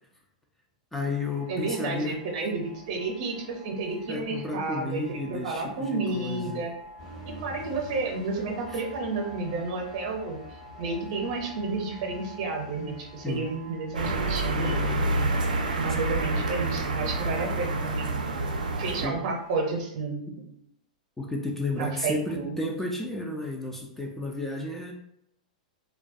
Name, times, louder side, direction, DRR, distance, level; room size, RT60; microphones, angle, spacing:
voice 1, 0.9-2.2 4.1-6.6 8.7-8.8 13.2-13.4 19.0-19.2 21.2-24.9, left 2 dB, 5° left, 0 dB, 0.3 m, -32 dB
sound 1, 1.0-19.8, equal, 85° left, 1.0 m, -49 dB
voice 2, 1.5-6.7 7.3-10.4 10.8-15.3 15.8-18.2 18.8-20.5 21.8-22.6, right 3 dB, 55° right, 1 dB, 0.7 m, -31 dB
sound 2, 7.0-15.0, equal, 50° left, 1.0 m, -48 dB
sound 3, 13.9-19.1, right 2 dB, 85° right, 0.4 m, -28 dB
2.2 x 2.2 x 2.6 m, 0.78 s
hypercardioid pair, 110°, 4 cm